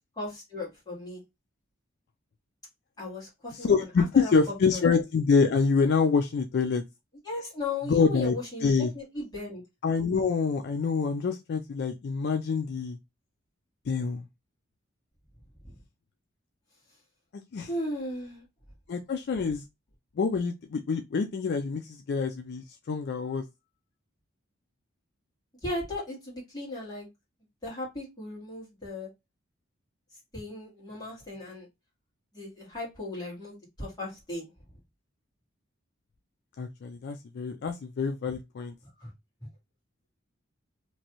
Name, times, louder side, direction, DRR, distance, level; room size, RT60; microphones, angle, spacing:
voice 1, 0.2-1.2 3.0-3.7 4.0-4.8 7.2-9.6 15.6-15.8 17.7-18.4 25.6-27.1 27.6-29.1 30.3-31.7 32.3-34.4 39.0-39.1 39.4-39.5, left 2 dB, 20° left, 1.7 m, -36 dB
voice 2, 3.6-6.8 7.8-8.3 8.6-8.9 9.8-13.0 13.9-14.2 17.3-17.7 18.9-19.6 20.2-23.4 36.6-38.7, left 5 dB, 55° left, 0.4 m, -26 dB
3.0 x 2.6 x 2.8 m
head